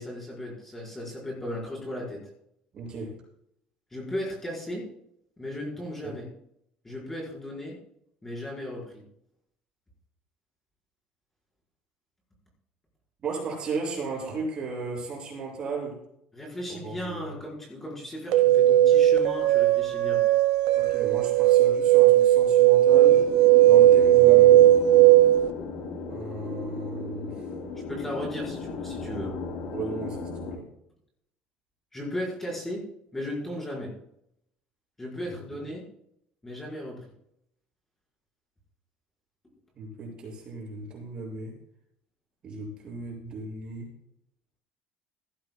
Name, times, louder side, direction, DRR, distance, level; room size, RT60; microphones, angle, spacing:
voice 1, 0.0-2.2 3.9-4.8 5.4-6.2 6.8-7.8 8.2-9.0 16.3-20.2 27.9-29.4 31.9-32.8 33.1-33.9 35.0-35.8 36.4-37.0, left 1 dB, 10° left, -5 dB, 4.9 m, -36 dB
voice 2, 2.7-3.2 6.0-6.2 13.2-16.0 16.7-17.4 20.8-23.3 23.6-24.8 26.1-27.3 29.7-30.7 35.2-35.4 39.7-41.6 42.4-43.9, right 3 dB, 30° right, -1 dB, 6.4 m, -35 dB
sound 1, 18.3-25.5, right 13 dB, 80° right, 1.8 m, -17 dB
sound 2, 22.9-30.6, left 4 dB, 75° left, 3.3 m, -36 dB
18.0 x 15.5 x 2.3 m, 0.75 s
cardioid pair, 165°, 3 cm